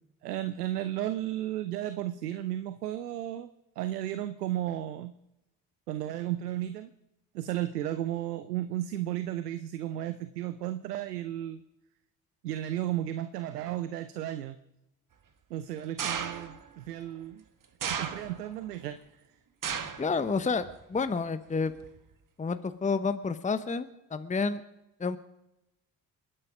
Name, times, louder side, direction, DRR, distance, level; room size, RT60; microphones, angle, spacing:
voice 1, 0.2-3.5 3.8-5.1 5.9-6.9 7.3-11.6 12.4-14.6 15.5-17.4 17.8-19.0, right 13 dB, 85° right, 12 dB, 0.7 m, -34 dB
sound 1, 16.0-16.7 17.8-18.6 19.6-20.1 20.5-21.0 21.8-21.9, right 7 dB, 45° right, 1.7 m, -34 dB
voice 2, 20.0-21.7 22.4-24.6 25.0-25.2, left 4 dB, 15° left, 11 dB, 0.9 m, -30 dB
28.0 x 9.9 x 5.0 m, 0.89 s
figure-of-eight pair, 45°, 46 cm